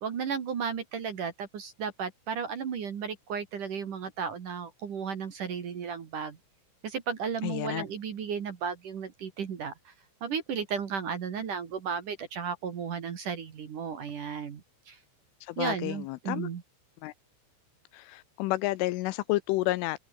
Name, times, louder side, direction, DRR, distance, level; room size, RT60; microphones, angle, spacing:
voice 1, 0.0-6.4 6.8-9.9 10.2-15.0 15.6-16.6, right 6 dB, 50° right, 3.0 m, -34 dB
voice 2, 7.4-7.9 15.4-16.5 17.0-17.1 17.9-20.0, left 18 dB, 85° left, 3.1 m, -30 dB
omnidirectional pair, 6.0 m